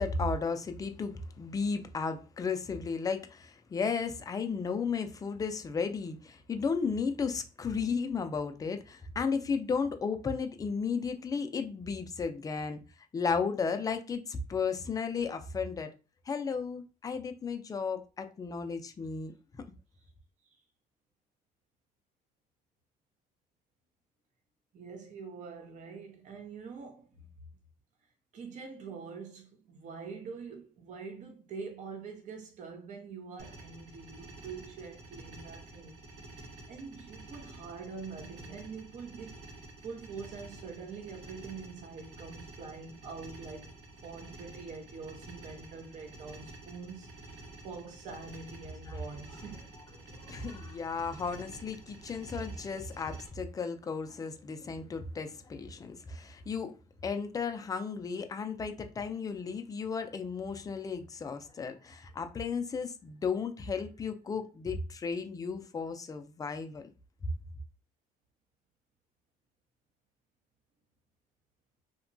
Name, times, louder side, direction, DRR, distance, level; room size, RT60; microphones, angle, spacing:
voice 1, 0.0-12.8 13.1-15.9 16.3-19.6 48.9-49.0 50.3-56.7 57.0-66.9, left 5 dB, 20° left, 0.4 m, -34 dB
voice 2, 24.7-27.3 28.3-36.0 36.3-39.4 39.8-43.7 44.0-49.6, right 5 dB, 45° right, 0.6 m, -45 dB
sound 1, 33.4-53.3, right 2 dB, 75° right, 0.9 m, -50 dB
2.8 x 2.1 x 2.6 m
cardioid pair, 110°, 17 cm